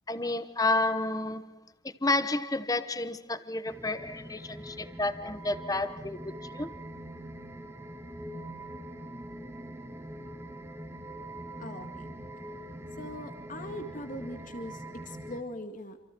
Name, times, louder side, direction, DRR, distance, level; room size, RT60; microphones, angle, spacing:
voice 1, 0.1-1.6 1.8-6.7, left 2 dB, 20° left, 12 dB, 1.1 m, -31 dB
sound 1, 3.7-15.4, right 1 dB, 15° right, 1.8 m, -43 dB
voice 2, 11.6-12.1 13.0-16.0, left 1 dB, 40° left, 7 dB, 2.0 m, -41 dB
28.0 x 27.0 x 4.6 m, 0.93 s
head